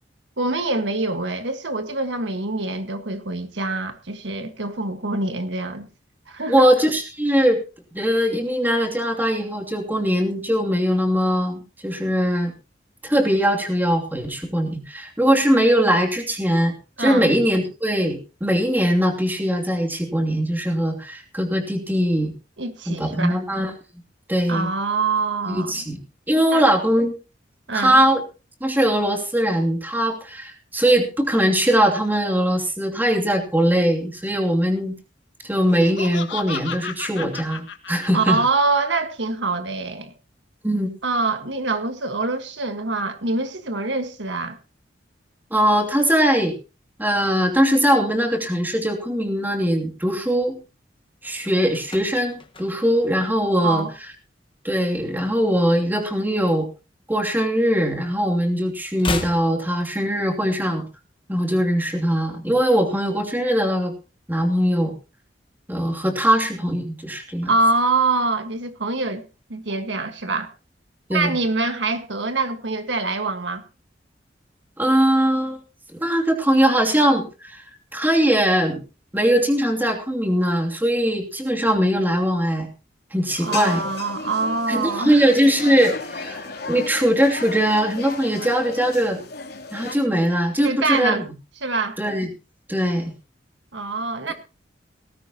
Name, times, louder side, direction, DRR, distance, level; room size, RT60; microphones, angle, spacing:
voice 1, 0.4-5.9 6.3-6.7 17.0-17.3 22.6-23.4 24.5-25.8 26.5-26.7 27.7-28.0 38.1-40.1 41.0-44.6 53.6-53.9 67.5-69.2 69.5-70.5 71.1-73.6 83.4-85.2 90.6-91.2 91.6-92.0 93.7-94.3, right 3 dB, 80° right, 7 dB, 1.6 m, -24 dB
voice 2, 6.5-7.6 7.9-12.5 13.0-22.3 22.9-23.7 24.3-24.7 25.5-26.0 26.3-27.1 27.7-28.2 28.6-34.9 35.4-38.4 40.6-40.9 45.5-46.5 47.0-50.6 51.2-53.9 54.6-56.7 57.1-60.8 61.3-63.9 64.3-64.9 65.7-67.5 71.1-71.3 74.8-75.6 76.0-77.6 77.9-78.8 79.1-82.7 83.1-83.9 84.7-89.2 89.7-91.2 92.0-92.3 92.7-93.1, equal, 10° right, 2 dB, 2.8 m, -21 dB
Laughter, 35.5-38.8, left 6 dB, 80° left, 1.7 m, -34 dB
sound 1, 51.8-54.2 54.5-54.8 55.0-56.5 56.8-58.1 58.4-60.5 60.8-60.9, left 3 dB, 30° left, 1.5 m, -35 dB
sound 2, 83.3-90.0, left 4 dB, 60° left, 3.2 m, -35 dB
18.5 x 15.5 x 3.0 m, 0.32 s
head